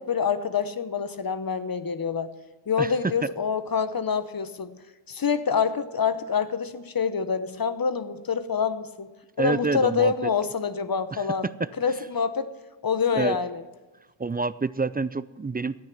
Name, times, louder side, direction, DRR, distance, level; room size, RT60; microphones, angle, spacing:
voice 1, 0.0-2.3 2.7-4.8 5.1-9.1 9.4-11.5 11.8-12.5 12.8-13.6, left 6 dB, 50° left, 13 dB, 0.9 m, -26 dB
voice 2, 9.4-10.3 11.1-11.3 13.2-13.4 14.2-15.8, right 3 dB, 20° right, 17 dB, 0.3 m, -28 dB
13.5 x 9.3 x 5.9 m, 1.2 s
wide cardioid pair, 55°, 46 cm